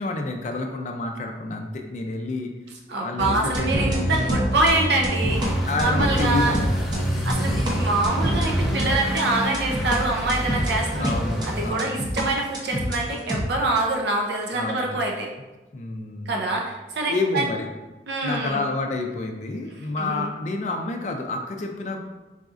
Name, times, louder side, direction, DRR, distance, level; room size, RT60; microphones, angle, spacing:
voice 1, 0.0-2.5 3.0-4.2 5.7-6.6 7.2-7.6 11.0-12.0 14.5-15.0 15.7-16.5 17.1-17.7 18.2-22.0, left 3 dB, 40° left, 2 dB, 0.3 m, -29 dB
voice 2, 2.9-6.5 7.3-11.1 11.5-15.3 16.3-17.5 18.1-18.7 20.0-20.3, right 2 dB, 70° right, 0 dB, 0.5 m, -25 dB
sound 1, 3.2-10.0 10.3-12.2 12.5-13.4, equal, 25° right, 0.6 m, -25 dB
sound 2, 5.3-11.7, equal, ahead, 0.9 m, -31 dB
4.0 x 3.6 x 2.4 m, 1.1 s
head